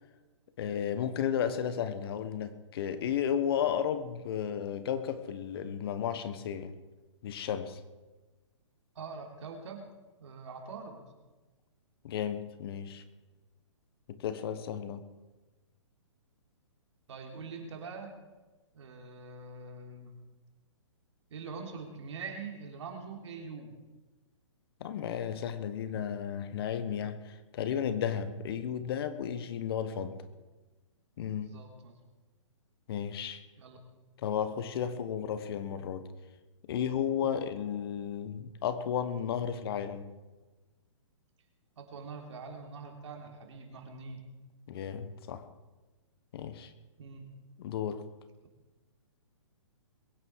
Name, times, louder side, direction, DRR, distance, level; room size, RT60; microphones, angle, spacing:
voice 1, 0.6-6.7 7.2-7.8 12.0-13.0 14.1-15.1 24.8-30.2 31.2-31.6 32.9-33.4 34.2-36.1 36.7-40.1 44.7-45.5 46.3-46.7 47.6-48.1, left 8 dB, 50° left, 12 dB, 1.4 m, -33 dB
voice 2, 9.0-9.9 10.2-11.0 17.1-18.1 18.7-20.1 21.3-23.7 31.4-31.9 33.6-33.8 37.2-37.4 41.8-44.2 47.0-47.2, right 4 dB, 65° right, 2 dB, 3.7 m, -44 dB
22.0 x 9.9 x 4.8 m, 1.2 s
hypercardioid pair, 135°, 16 cm